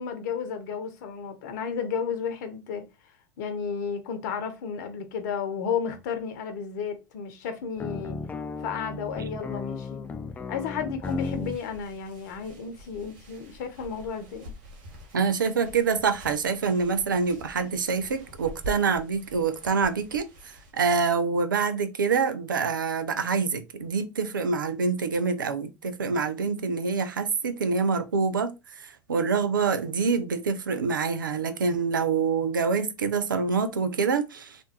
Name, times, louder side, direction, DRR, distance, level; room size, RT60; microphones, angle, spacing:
voice 1, 0.0-2.8 3.4-8.2 8.6-10.0 10.5-14.5, left 6 dB, 60° left, 0.8 m, -33 dB
sound 1, 7.8-11.6, left 4 dB, 15° left, 0.3 m, -34 dB
sound 2, 11.0-20.7, equal, 55° right, 1.1 m, -46 dB
voice 2, 15.1-34.6, right 5 dB, 85° right, 0.5 m, -26 dB
3.4 x 2.6 x 2.8 m
figure-of-eight pair, 80°, 11 cm